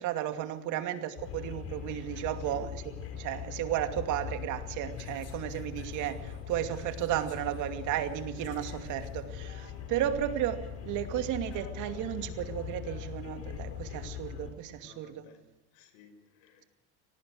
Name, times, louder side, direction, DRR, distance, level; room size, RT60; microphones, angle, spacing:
voice 1, 0.0-2.8 3.1-15.2, right 12 dB, 55° right, 2.6 m, -34 dB
sound 1, 1.2-14.5, left 9 dB, 45° left, 4.9 m, -41 dB
voice 2, 14.8-15.5 15.7-16.7, left 6 dB, 75° left, 5.4 m, -56 dB
24.5 x 18.5 x 6.4 m
supercardioid pair, 125°, 35 cm